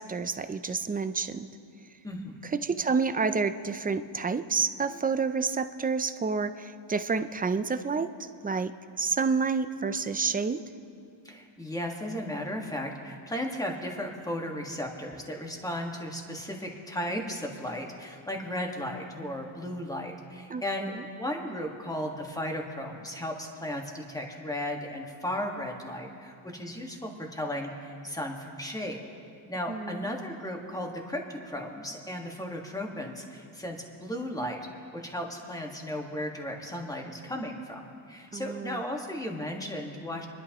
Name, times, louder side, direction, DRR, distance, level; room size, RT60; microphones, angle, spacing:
voice 1, 0.0-1.5 2.4-8.7 9.0-10.6 20.5-21.0 29.7-30.1 38.3-38.8, right 5 dB, 20° right, 11 dB, 0.4 m, -29 dB
voice 2, 2.0-2.3 11.2-29.0 29.5-34.6 34.9-40.3, left 1 dB, 5° left, 1 dB, 1.6 m, -35 dB
26.0 x 11.5 x 3.0 m, 2.5 s
cardioid pair, 110°, 48 cm